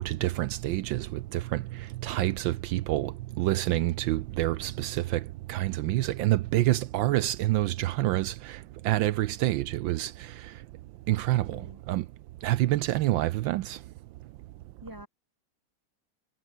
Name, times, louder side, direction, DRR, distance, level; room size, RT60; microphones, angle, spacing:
voice 1, 0.0-1.6 2.0-5.2 5.5-8.6 8.8-10.1 11.1-11.6 11.9-12.0 12.4-13.8, right 16 dB, 75° right, 1.3 m, -27 dB
voice 2, 11.3-11.8 14.8-15.1, equal, 10° right, 6.1 m, -45 dB
omnidirectional pair, 2.2 m